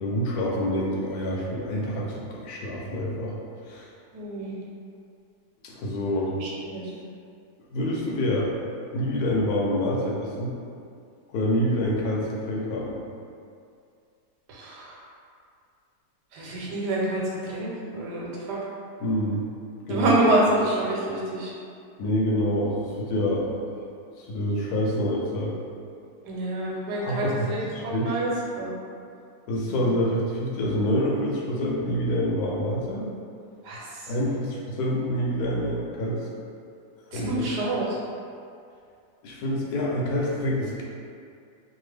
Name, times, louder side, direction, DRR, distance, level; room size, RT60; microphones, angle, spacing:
voice 1, 0.0-3.3 3.7-3.9 5.6-6.3 7.7-8.5 8.9-10.5 11.3-13.0 19.0-19.4 19.9-20.1 22.0-23.5 24.2-25.5 27.0-28.1 29.5-33.1 34.1-36.2 37.1-37.5 39.2-40.8, equal, 75° left, -4 dB, 1.1 m, -27 dB
voice 2, 4.1-4.5 6.4-6.9 14.5-15.0 16.3-18.6 19.9-21.5 26.2-28.3 28.5-28.7 29.7-29.8 33.6-34.0 37.1-38.0, right 1 dB, 85° right, -4 dB, 1.3 m, -27 dB
2.8 x 2.4 x 3.2 m, 2.4 s
omnidirectional pair, 1.7 m